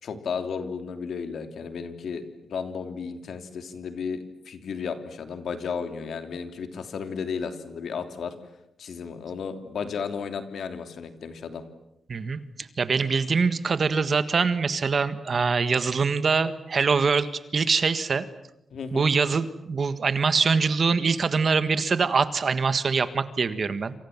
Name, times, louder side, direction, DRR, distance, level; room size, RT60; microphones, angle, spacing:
voice 1, 0.0-2.2 2.5-8.3 8.8-11.6 18.7-19.1, left 6 dB, 70° left, 8 dB, 3.2 m, -33 dB
voice 2, 12.8-17.3 17.5-18.2 18.9-23.9, right 5 dB, 40° right, 12 dB, 1.6 m, -23 dB
28.0 x 27.5 x 7.3 m, 0.84 s
wide cardioid pair, 155°, 0 cm